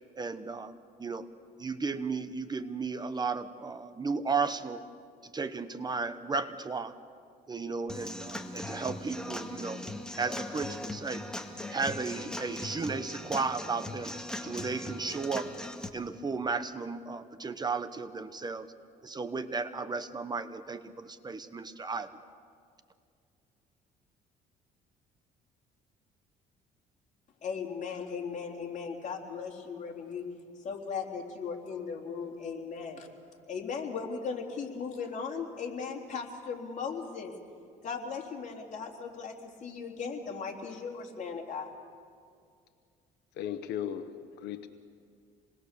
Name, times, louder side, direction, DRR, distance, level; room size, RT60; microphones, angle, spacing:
voice 1, 0.2-1.3 1.6-4.8 5.2-7.0 7.5-9.8 10.2-11.3 11.7-14.1 14.4-15.5 15.9-18.7 19.0-22.1, right 4 dB, 25° right, 11 dB, 0.9 m, -34 dB
Human voice / Acoustic guitar / Drum, 7.9-15.9, left 1 dB, 5° left, 1.8 m, -39 dB
voice 2, 27.4-30.3 30.6-33.1 33.5-37.3 37.8-39.3 39.6-41.7, left 5 dB, 45° left, 1 dB, 3.6 m, -37 dB
voice 3, 43.4-44.7, left 10 dB, 80° left, 9 dB, 1.1 m, -36 dB
27.0 x 20.5 x 6.8 m, 2.2 s
cardioid pair, 110°, 17 cm